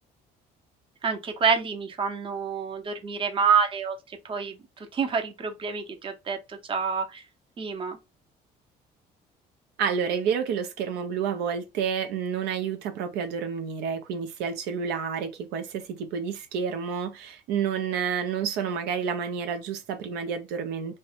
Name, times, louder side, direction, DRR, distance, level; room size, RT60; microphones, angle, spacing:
voice 1, 1.0-7.2 7.6-8.0, right 6 dB, 30° right, 0.7 m, -28 dB
voice 2, 9.8-21.0, right 7 dB, 85° right, 0.5 m, -29 dB
2.6 x 2.1 x 2.4 m
cardioid pair, 110°, 17 cm